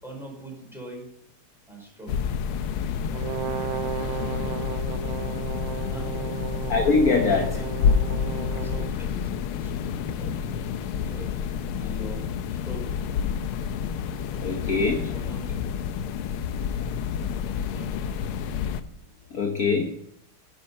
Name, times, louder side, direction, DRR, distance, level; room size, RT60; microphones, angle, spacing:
voice 1, 0.0-1.1 1.7-2.3 5.9-6.1 7.1-7.7 8.5-11.3 11.8-12.2 12.5-13.0 14.2-14.6 15.1-15.8 17.6-18.0, equal, ahead, -1 dB, 5.0 m, -43 dB
sound 1, 2.1-18.8, left 7 dB, 90° left, 1.7 m, -29 dB
Brass instrument, 3.1-9.0, right 12 dB, 70° right, 1.4 m, -34 dB
voice 2, 6.7-7.6 14.4-15.1 19.3-19.8, left 4 dB, 50° left, 4 dB, 1.4 m, -23 dB
12.0 x 10.5 x 5.5 m, 0.74 s
omnidirectional pair, 2.3 m